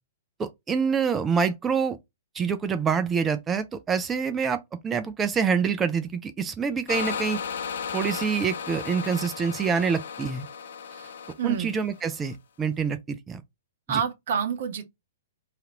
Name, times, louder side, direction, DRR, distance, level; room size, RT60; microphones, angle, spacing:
voice 1, 0.4-2.0 2.3-7.4 7.9-10.5 11.4-13.4 13.9-14.0, right 6 dB, 15° right, 0.3 m, -26 dB
sound 1, 6.9-12.3, left 6 dB, 60° left, 0.4 m, -35 dB
voice 2, 11.4-11.7 13.9-14.8, right 7 dB, 55° right, 0.6 m, -28 dB
2.8 x 2.4 x 2.8 m
figure-of-eight pair, 115°, 0 cm